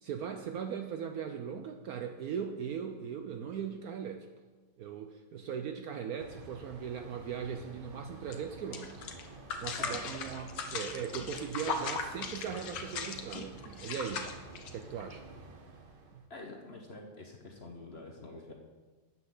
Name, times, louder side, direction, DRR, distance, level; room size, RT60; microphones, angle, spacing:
voice 1, 0.0-4.3 4.8-9.1 9.6-14.3 14.7-15.2 16.1-16.2, right 7 dB, 70° right, 6 dB, 0.9 m, -39 dB
sound 1, 6.2-16.3, right 3 dB, 45° right, 0.7 m, -51 dB
sound 2, 8.3-8.4 8.7-15.1, left 5 dB, 75° left, 1.6 m, -38 dB
voice 2, 16.3-18.5, left 2 dB, 40° left, 1 dB, 1.0 m, -46 dB
12.5 x 8.8 x 3.9 m, 1.4 s
omnidirectional pair, 2.0 m